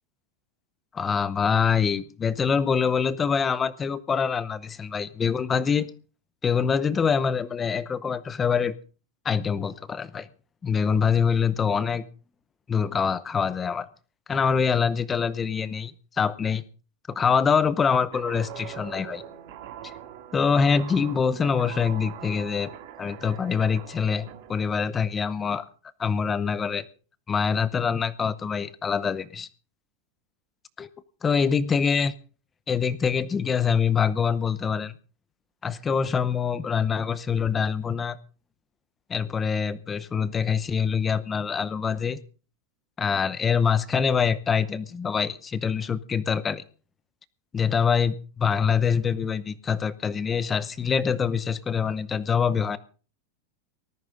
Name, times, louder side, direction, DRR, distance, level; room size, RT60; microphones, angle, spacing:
voice 1, 0.9-5.9 6.4-8.7 9.2-10.3 10.6-12.1 12.7-13.9 14.3-15.9 16.2-16.6 17.1-19.2 19.8-19.9 20.3-22.7 23.0-25.6 26.0-26.9 27.3-29.5 30.8-30.9 31.2-32.1 32.7-34.9 35.6-38.2 39.1-42.2 43.0-46.6 47.5-52.8, left 6 dB, 15° left, 16 dB, 0.7 m, -25 dB
Guitar, 18.1-24.6, right 10 dB, 50° right, 2.2 m, -42 dB
19.0 x 14.0 x 3.8 m, 0.37 s
supercardioid pair, 170°, 0 cm